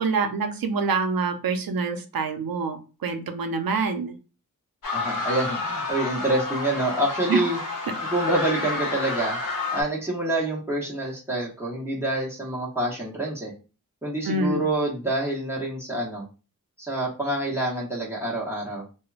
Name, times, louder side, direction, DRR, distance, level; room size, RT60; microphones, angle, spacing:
voice 1, 0.0-4.2 7.3-7.4 14.3-14.6, right 4 dB, 85° right, 6 dB, 0.5 m, -26 dB
sound 1, 4.8-9.8, left 3 dB, 65° left, 0.7 m, -30 dB
voice 2, 4.9-7.6 8.0-9.4 9.7-13.5 14.0-16.2 16.9-18.8, right 1 dB, 5° right, -3 dB, 0.8 m, -27 dB
3.0 x 2.1 x 2.3 m, 0.33 s
wide cardioid pair, 95°, 34 cm